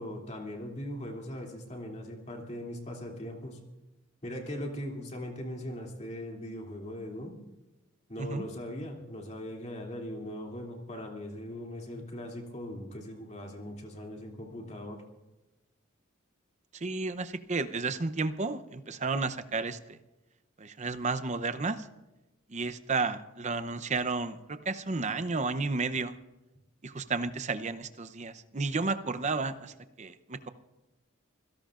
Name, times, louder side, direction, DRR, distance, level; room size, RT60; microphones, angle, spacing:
voice 1, 0.0-3.6 4.2-7.4 8.1-15.0, left 1 dB, 35° left, 0 dB, 2.8 m, -40 dB
voice 2, 16.8-20.0 20.6-21.8 22.5-26.1 26.8-30.5, right 3 dB, 35° right, 11 dB, 0.7 m, -32 dB
26.5 x 17.0 x 2.5 m, 1.0 s
head